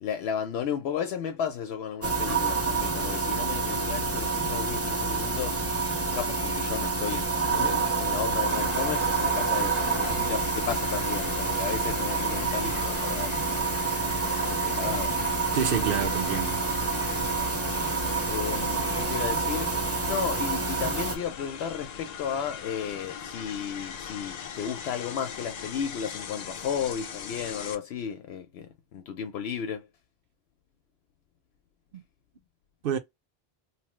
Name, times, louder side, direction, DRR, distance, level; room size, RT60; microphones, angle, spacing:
voice 1, 0.0-5.6 6.1-13.7 14.5-15.2 18.3-29.9, left 8 dB, 85° left, 0.8 m, -34 dB
sound 1, 2.0-21.2, right 4 dB, 25° right, 0.3 m, -28 dB
sound 2, 8.5-27.7, left 8 dB, 55° left, 0.5 m, -40 dB
voice 2, 15.5-16.6 31.9-32.0 32.8-33.0, right 8 dB, 65° right, 0.8 m, -28 dB
2.9 x 2.1 x 3.0 m
omnidirectional pair, 1.1 m